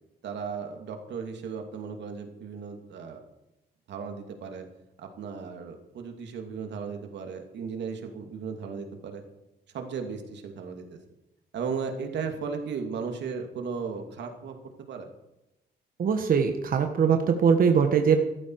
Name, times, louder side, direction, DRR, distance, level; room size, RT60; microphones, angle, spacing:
voice 1, 0.2-3.2 3.9-4.7 5.0-9.2 9.7-11.0 11.5-14.6 14.9-15.1, right 5 dB, 90° right, 4 dB, 2.6 m, -36 dB
voice 2, 16.0-18.2, right 6 dB, 55° right, 5 dB, 1.5 m, -22 dB
16.5 x 14.0 x 4.8 m, 0.92 s
cardioid pair, 135°, 18 cm